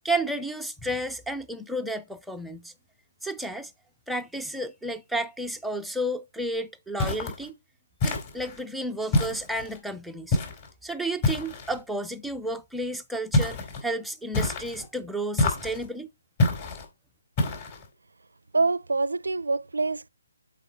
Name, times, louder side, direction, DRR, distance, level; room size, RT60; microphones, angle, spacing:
voice 1, 0.0-2.7 3.2-3.7 4.1-7.5 8.0-10.4 10.8-16.1, right 1 dB, ahead, 0.4 m, -32 dB
sound 1, 7.0-7.5 8.0-8.6 9.1-9.8 10.3-10.7 11.2-11.8 13.3-13.8 14.3-14.9 15.4-15.9 16.4-16.9 17.4-17.9, left 2 dB, 30° left, 3.3 m, -26 dB
voice 2, 18.5-20.1, right 3 dB, 90° right, 0.4 m, -25 dB
7.4 x 5.2 x 4.1 m
hypercardioid pair, 160°, 0 cm